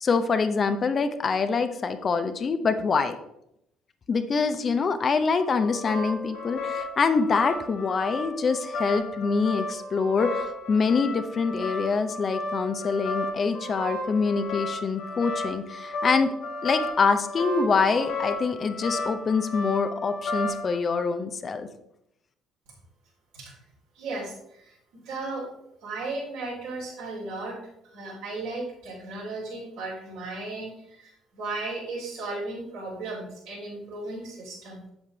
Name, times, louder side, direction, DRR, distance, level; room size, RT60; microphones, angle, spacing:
voice 1, 0.0-3.2 4.1-16.3 16.6-21.7, left 5 dB, 40° left, 9 dB, 0.8 m, -25 dB
sound 1, 5.4-20.8, left 2 dB, 60° left, 1.6 m, -33 dB
voice 2, 23.9-25.5 25.8-27.6 27.8-34.9, right 2 dB, 65° right, -4 dB, 3.7 m, -35 dB
8.2 x 8.0 x 3.4 m, 0.77 s
figure-of-eight pair, 50°, 0 cm